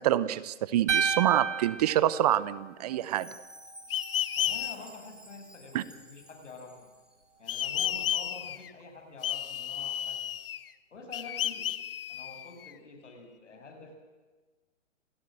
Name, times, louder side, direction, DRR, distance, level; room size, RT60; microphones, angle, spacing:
voice 1, 0.0-3.3 5.7-5.8, right 13 dB, 30° right, 18 dB, 0.9 m, -26 dB
sound 1, 0.9-3.1, right 6 dB, 70° right, 1.8 m, -31 dB
Chime, 3.1-7.2, equal, ahead, 3.3 m, -51 dB
sound 2, 3.9-4.7 7.5-8.7 9.2-10.7 11.1-12.7, left 11 dB, 50° left, 1.0 m, -32 dB
voice 2, 4.3-6.9 7.4-10.3 10.9-11.7 12.1-13.9, left 3 dB, 70° left, 4 dB, 7.5 m, -47 dB
28.0 x 16.5 x 7.7 m, 1.3 s
hypercardioid pair, 135°, 37 cm